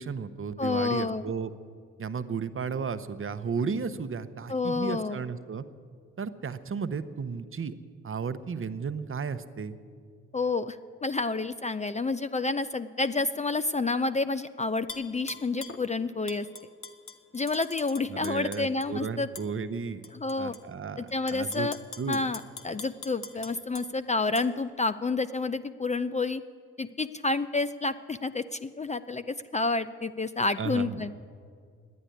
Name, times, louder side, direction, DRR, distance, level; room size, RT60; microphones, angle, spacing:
voice 1, 0.0-1.5 2.0-5.6 6.2-7.8 8.0-9.8 18.1-20.0 20.4-21.7 22.0-22.2 30.6-31.0, right 5 dB, 40° right, 11 dB, 0.9 m, -34 dB
voice 2, 0.6-1.2 4.5-5.2 10.3-10.8 11.0-16.5 17.3-19.3 20.1-20.5 21.0-21.8 22.1-26.4 26.8-31.1, left 3 dB, 20° left, 12 dB, 0.5 m, -29 dB
Tap / Glass, 14.9-15.8 16.3-18.9 19.4-19.5 20.0-20.6 21.1-23.9 24.4-24.5, left 5 dB, 40° left, 1.2 m, -43 dB
11.5 x 10.0 x 9.9 m, 2.2 s
hypercardioid pair, 45°, 33 cm